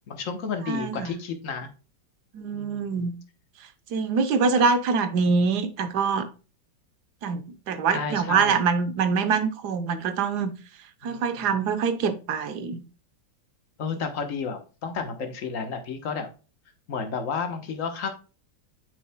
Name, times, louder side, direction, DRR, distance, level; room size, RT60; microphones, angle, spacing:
voice 1, 0.1-1.7 2.5-3.0 7.9-8.6 11.0-11.4 13.8-16.3 16.9-18.1, left 5 dB, 50° left, 1.3 m, -32 dB
voice 2, 0.7-1.1 2.3-3.1 3.9-6.3 7.2-10.5 11.0-12.8, right 5 dB, 70° right, 1.3 m, -24 dB
8.2 x 5.5 x 2.2 m
omnidirectional pair, 1.9 m